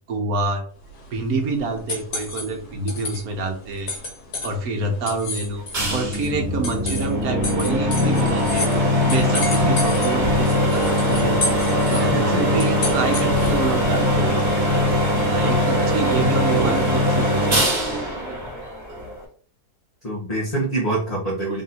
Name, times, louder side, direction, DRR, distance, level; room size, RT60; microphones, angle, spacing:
voice 1, 0.1-0.6 1.1-3.9 4.4-5.6 5.9-11.3 11.9-14.7 15.3-17.7 18.0-18.1, right 3 dB, 65° right, 4 dB, 1.3 m, -27 dB
sound 1, 0.8-13.7, left 2 dB, 70° left, 1.8 m, -33 dB
sound 2, 5.7-19.2, left 1 dB, 40° right, 1.5 m, -21 dB
voice 2, 11.1-11.4 12.0-12.6 16.5-16.8 20.0-21.6, right 2 dB, 30° left, -4 dB, 1.0 m, -26 dB
3.7 x 2.7 x 4.2 m, 0.43 s
omnidirectional pair, 1.7 m